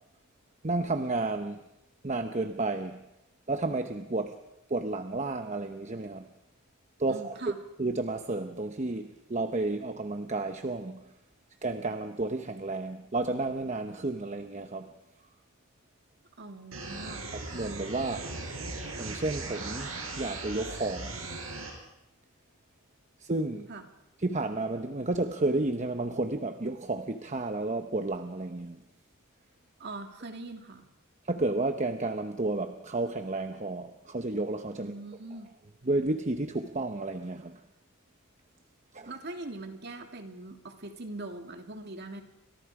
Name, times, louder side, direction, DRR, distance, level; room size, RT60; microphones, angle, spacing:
voice 1, 0.6-1.6 2.0-3.0 3.5-4.4 4.7-6.2 7.0-7.4 7.8-11.0 11.6-14.9 17.3-18.3 19.0-21.2 23.2-23.7 24.2-28.8 31.2-34.9 35.8-37.6 38.9-39.1, right 2 dB, 35° right, 7 dB, 1.0 m, -31 dB
voice 2, 7.1-7.6 16.4-17.3 23.7-23.9 29.8-30.9 34.8-35.5 39.1-42.2, right 2 dB, 50° right, 5 dB, 2.6 m, -42 dB
sound 1, 16.7-21.7, right 3 dB, 70° right, 6.4 m, -38 dB
30.0 x 25.5 x 4.9 m, 0.90 s
head